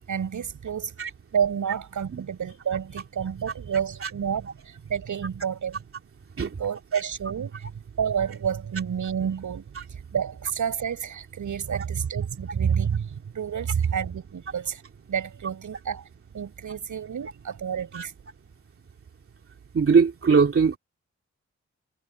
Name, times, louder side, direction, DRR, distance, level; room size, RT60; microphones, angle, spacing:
voice 1, 0.1-0.9 1.3-5.8 6.4-7.7 8.0-14.8 15.1-16.0 16.3-18.1, right 7 dB, 85° right, 7.2 m, -29 dB
voice 2, 19.7-20.8, right 5 dB, 45° right, 2.9 m, -21 dB
wide cardioid pair, 170°, 30 cm